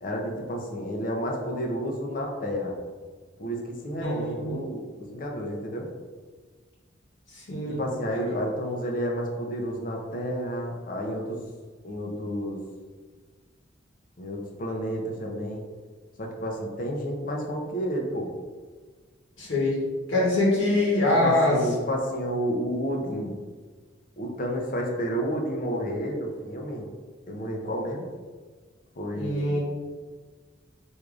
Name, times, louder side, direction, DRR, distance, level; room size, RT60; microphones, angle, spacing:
voice 1, 0.0-2.8 3.4-5.9 7.7-11.4 11.8-12.6 14.2-15.6 16.2-18.3 21.0-23.4 24.2-26.9 27.3-28.1 29.0-29.6, equal, 45° left, 1 dB, 0.6 m, -30 dB
voice 2, 4.0-4.6 7.3-7.8 8.1-8.2 19.4-19.8 20.1-21.6 29.1-29.6, left 1 dB, 75° left, -5 dB, 1.1 m, -24 dB
4.6 x 2.6 x 2.4 m, 1.4 s
head